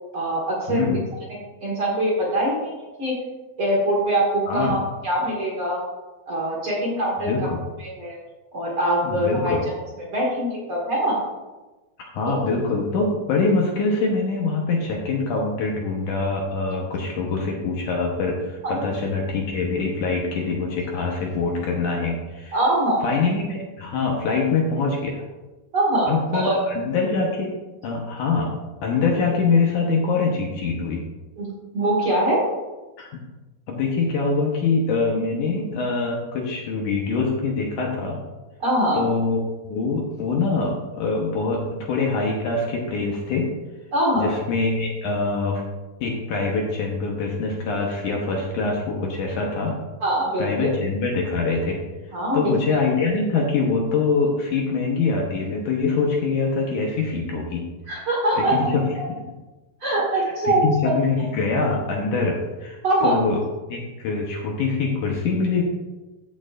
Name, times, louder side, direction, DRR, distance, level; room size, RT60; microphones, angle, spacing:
voice 1, 0.1-0.8 1.6-3.1 3.6-4.8 5.0-5.8 6.3-7.3 7.8-8.2 8.5-9.5 10.1-11.2 18.6-18.9 22.5-23.1 25.7-26.6 31.4-31.5 31.7-32.4 38.6-39.0 43.9-44.3 50.0-50.7 52.1-52.6 57.9-58.5 59.8-60.9 62.8-63.2, right 1 dB, 45° right, -4 dB, 2.1 m, -23 dB
voice 2, 0.7-1.0 4.5-4.8 7.2-7.6 9.0-9.6 12.1-22.6 23.0-25.2 26.1-27.5 27.8-28.6 28.8-31.1 33.0-33.2 33.7-38.2 38.9-39.4 39.6-43.5 44.2-45.6 46.0-49.8 50.4-51.8 52.3-57.7 58.4-58.8 59.1-59.2 60.2-62.8 63.0-63.4 63.7-65.6, left 4 dB, 70° left, -1 dB, 2.2 m, -24 dB
14.5 x 6.5 x 2.5 m, 1.1 s
omnidirectional pair, 4.2 m